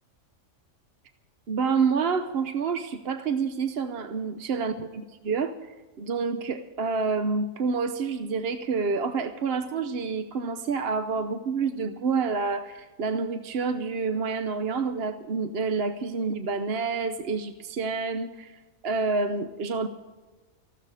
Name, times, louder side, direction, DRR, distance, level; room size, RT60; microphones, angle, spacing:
voice 1, 1.5-5.7 6.0-19.9, right 5 dB, 55° right, 9 dB, 0.9 m, -28 dB
18.5 x 15.0 x 4.9 m, 1.3 s
omnidirectional pair, 1.4 m